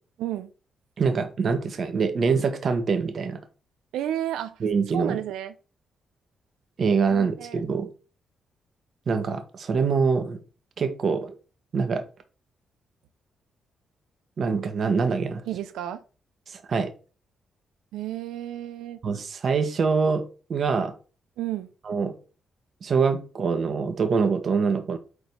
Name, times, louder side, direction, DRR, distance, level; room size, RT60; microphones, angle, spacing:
voice 1, 0.2-0.5 3.9-4.6 4.9-5.5 7.1-7.6 15.4-16.0 17.9-19.0 21.4-21.7, right 12 dB, 80° right, 0.5 m, -32 dB
voice 2, 1.0-3.4 4.6-5.2 6.8-7.9 9.1-10.4 10.8-11.3 11.7-12.0 14.4-15.4 16.5-16.9 19.0-20.2 20.5-20.9 21.9-22.1 22.8-25.0, right 5 dB, 55° right, 1.2 m, -24 dB
4.8 x 3.9 x 5.2 m
hypercardioid pair, 45°, 0 cm